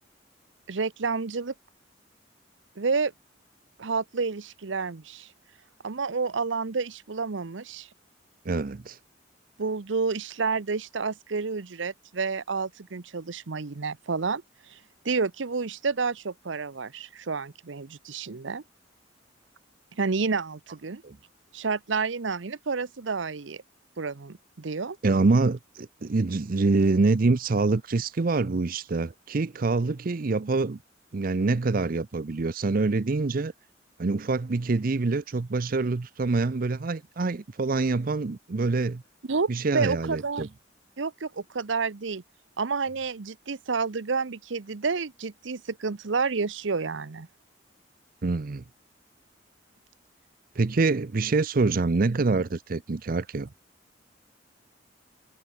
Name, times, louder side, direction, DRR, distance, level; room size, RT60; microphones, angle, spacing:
voice 1, 0.7-1.5 2.8-3.1 3.8-5.3 5.8-7.9 9.6-14.4 14.7-14.8 15.0-18.6 20.0-21.0 21.5-23.6 24.0-25.0 39.3-39.5 39.7-40.5 41.0-42.2 42.6-47.3, right 4 dB, 80° right, 0.8 m, -29 dB
voice 2, 8.5-9.0 21.0-21.2 25.0-30.8 31.1-33.5 34.0-39.0 39.5-40.5 48.2-48.6 50.6-53.5, right 3 dB, 50° right, 0.6 m, -25 dB
head